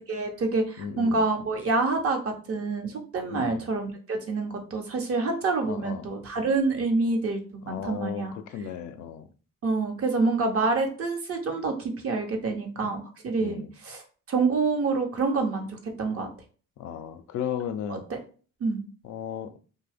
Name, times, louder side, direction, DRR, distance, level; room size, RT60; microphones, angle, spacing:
voice 1, 0.1-8.3 9.6-14.0 14.3-15.7 16.0-16.3 17.9-18.2 18.6-18.8, right 3 dB, 50° right, 0.9 m, -27 dB
voice 2, 0.8-1.2 3.3-3.6 5.6-6.0 7.6-9.3 12.8-13.0 13.4-13.7 16.8-18.1 19.0-19.6, left 8 dB, 75° left, 0.5 m, -35 dB
2.7 x 2.2 x 3.4 m
cardioid pair, 90°, 30 cm